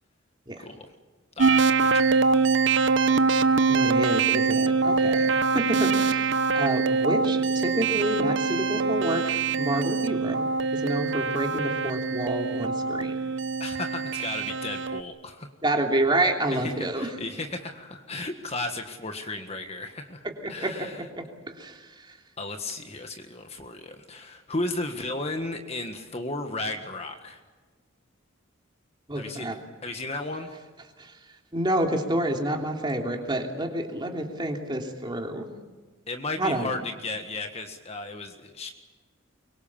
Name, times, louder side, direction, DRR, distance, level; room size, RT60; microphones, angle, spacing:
voice 1, 0.6-0.9 1.4-2.5 13.6-15.5 16.5-21.1 22.4-27.4 29.1-29.5 29.8-30.5 36.1-38.7, left 2 dB, 30° left, 5 dB, 1.6 m, -34 dB
sound 1, 1.4-15.0, right 4 dB, 60° right, 0.9 m, -24 dB
voice 2, 3.7-10.5 10.7-13.2 15.6-17.1 20.4-20.9 21.2-21.3 21.6-21.9 29.1-29.6 31.0-31.1 31.5-35.5 36.4-36.7, right 1 dB, 20° right, 2 dB, 3.1 m, -28 dB
24.5 x 23.5 x 7.2 m, 1.3 s
head